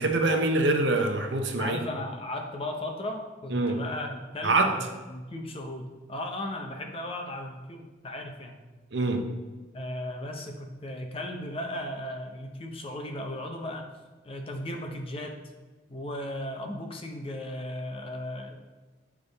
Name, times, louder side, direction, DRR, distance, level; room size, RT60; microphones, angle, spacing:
voice 1, 0.0-1.8 3.5-3.8 4.4-4.7 8.9-9.2, right 2 dB, 60° right, 4 dB, 0.7 m, -24 dB
voice 2, 1.6-8.6 9.7-13.9 14.2-15.4 15.9-18.6, left 1 dB, 30° left, 3 dB, 0.7 m, -36 dB
8.5 x 3.6 x 4.0 m, 1.3 s
head